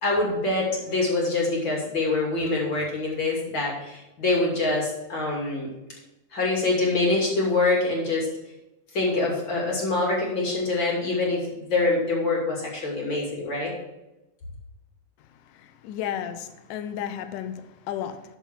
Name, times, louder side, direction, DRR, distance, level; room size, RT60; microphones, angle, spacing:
voice 1, 0.0-5.7 6.3-8.3 8.9-11.4 11.7-13.7, left 2 dB, 35° left, -2 dB, 2.9 m, -25 dB
voice 2, 15.5-18.2, left 10 dB, 75° left, 9 dB, 2.2 m, -33 dB
13.0 x 5.7 x 4.6 m, 0.98 s
omnidirectional pair, 4.2 m